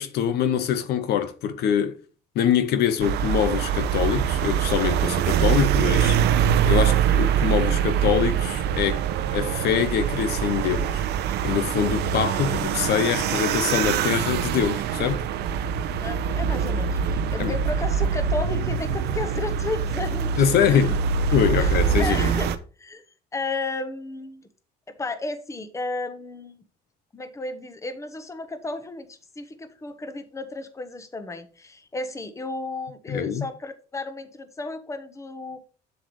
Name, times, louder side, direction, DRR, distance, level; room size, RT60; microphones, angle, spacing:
voice 1, 0.0-2.0 2.3-6.2 6.7-11.0 11.4-15.3 17.4-17.5 20.4-21.0 21.3-22.3 33.1-33.4, left 9 dB, 75° left, 0.8 m, -24 dB
sound 1, 3.0-22.6, right 8 dB, 80° right, 0.7 m, -24 dB
voice 2, 16.0-20.9 21.6-22.5 22.8-23.0 23.3-24.4 24.9-26.6 27.1-35.6, left 2 dB, 15° left, 1.1 m, -33 dB
7.6 x 7.0 x 3.2 m
cardioid pair, 110°, 17 cm